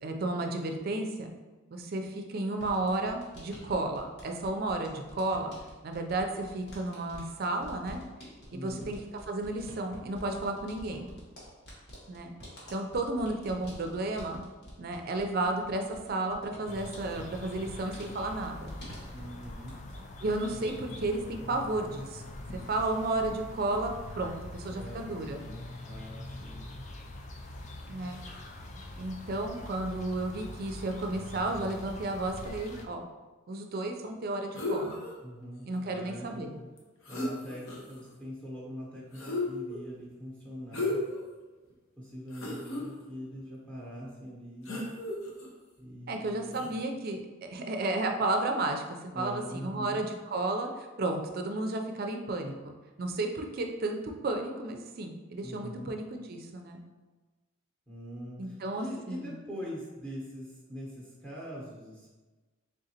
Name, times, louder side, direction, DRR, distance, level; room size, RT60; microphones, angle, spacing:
voice 1, 0.0-1.3 1.7-5.5 5.8-8.0 8.5-9.0 9.3-11.1 12.1-12.3 12.7-14.4 14.8-18.7 20.2-22.2 22.7-25.4 27.9-28.2 29.0-33.0 33.5-35.0 35.7-36.5 46.1-52.7 53.0-56.8 58.4-59.3, right 2 dB, 45° right, 4 dB, 0.4 m, -33 dB
sound 1, 2.6-20.1 20.3-21.0, equal, 50° left, 1.3 m, -49 dB
voice 2, 8.5-8.9 19.1-19.8 24.7-26.7 35.2-36.6 37.1-41.0 42.0-44.9 45.8-46.7 49.1-50.0 55.4-55.9 57.9-62.1, equal, 5° left, -5 dB, 0.8 m, -43 dB
sound 2, 16.7-32.9, left 1 dB, 35° left, 0.3 m, -44 dB
sound 3, 34.5-35.2 36.8-36.9 37.0-38.0 39.1-39.8 40.7-41.2 41.7-41.8 42.3-42.8 44.7-45.5 46.5-46.7, left 2 dB, 75° left, 0.8 m, -34 dB
3.8 x 3.6 x 2.8 m, 1.2 s
head